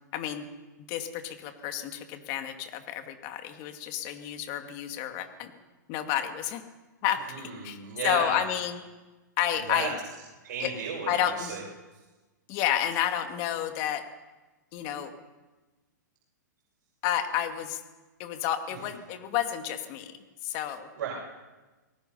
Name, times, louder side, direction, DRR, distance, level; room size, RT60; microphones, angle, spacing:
voice 1, 0.1-0.5 0.9-5.5 5.9-6.6 7.0-7.2 7.6-7.8 8.0-8.8 9.4-9.9 10.6-10.7 11.1-11.5 12.5-14.1 14.7-15.1 17.0-17.8 18.2-20.2 20.4-20.9, left 11 dB, 40° left, 7 dB, 2.2 m, -30 dB
voice 2, 7.3-8.4 9.5-9.9 10.4-11.6 18.8-18.9 21.0-21.1, right 6 dB, 65° right, -3 dB, 6.0 m, -34 dB
26.5 x 19.5 x 5.6 m, 1.2 s
hypercardioid pair, 135°, 10 cm